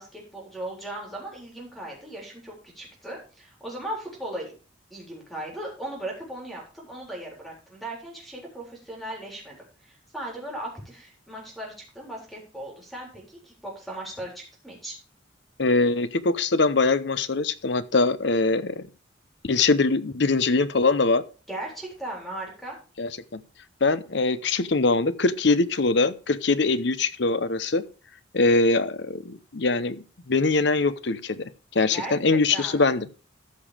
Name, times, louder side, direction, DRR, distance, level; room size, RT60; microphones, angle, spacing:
voice 1, 0.0-4.5 4.9-14.9 21.5-22.8 31.9-32.1 32.5-32.9, right 1 dB, ahead, -1 dB, 3.8 m, -37 dB
voice 2, 15.6-18.9 19.4-21.2 23.0-23.4 23.8-27.8 28.3-33.1, left 3 dB, 60° left, 14 dB, 0.8 m, -23 dB
14.0 x 5.5 x 4.9 m, 0.35 s
head